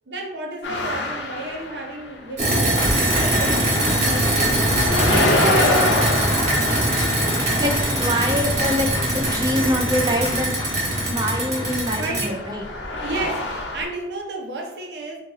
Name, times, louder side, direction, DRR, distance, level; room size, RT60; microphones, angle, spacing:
voice 1, 0.1-5.8 11.5-11.6 12.0-12.4 12.9-15.2, right 2 dB, 70° right, 2 dB, 0.8 m, -32 dB
sound 1, 0.6-2.4 2.7-13.8, left 2 dB, 85° left, 0.7 m, -27 dB
sound 2, 2.4-12.3, right 1 dB, 40° right, 1.0 m, -22 dB
Applause, 2.8-12.8, left 2 dB, 25° left, 0.6 m, -31 dB
voice 2, 7.4-10.6 11.1-12.6, equal, 25° right, 3 dB, 0.5 m, -25 dB
3.9 x 2.5 x 4.0 m, 0.90 s
head